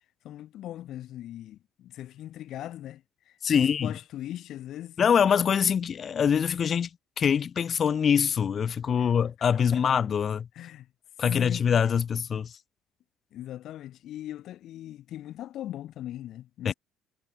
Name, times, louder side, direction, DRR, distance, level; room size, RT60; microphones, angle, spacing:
voice 1, 0.2-5.0 9.0-9.1 9.7-9.8 10.5-10.9 11.2-11.6 13.3-16.7, left 13 dB, 60° left, 8.0 m, -40 dB
voice 2, 3.4-3.9 5.0-6.9 7.2-10.5 11.2-12.5 16.7-16.8, left 7 dB, 35° left, 2.1 m, -24 dB
cardioid pair, 125°, 0 cm